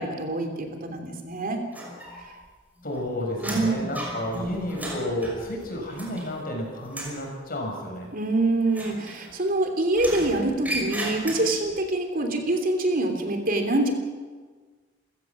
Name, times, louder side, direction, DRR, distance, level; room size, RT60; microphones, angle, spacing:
voice 1, 0.0-1.6 3.4-3.8 8.1-13.9, right 2 dB, 45° right, 4 dB, 3.1 m, -25 dB
sound 1, 1.7-2.5 2.8-6.5 6.8-7.2 8.7-9.6 9.9-11.7, equal, 10° right, 5.9 m, -35 dB
voice 2, 2.8-8.1, left 1 dB, 45° left, 1 dB, 6.9 m, -31 dB
29.0 x 16.0 x 7.5 m, 1.4 s
head